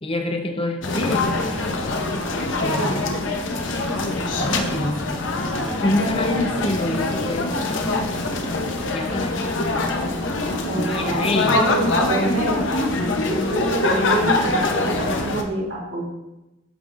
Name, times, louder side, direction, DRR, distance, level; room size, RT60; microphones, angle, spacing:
voice 1, 0.0-1.3 2.6-3.0 4.4-5.0 5.8-7.5 8.9-9.5 10.9-11.7, left 2 dB, 30° left, 5 dB, 0.7 m, -25 dB
sound 1, 0.8-15.4, left 2 dB, 75° left, 0.9 m, -24 dB
voice 2, 2.6-3.0 10.6-12.6 13.3-16.1, right 2 dB, 80° right, -4 dB, 2.2 m, -26 dB
13.0 x 5.3 x 2.5 m, 0.96 s
head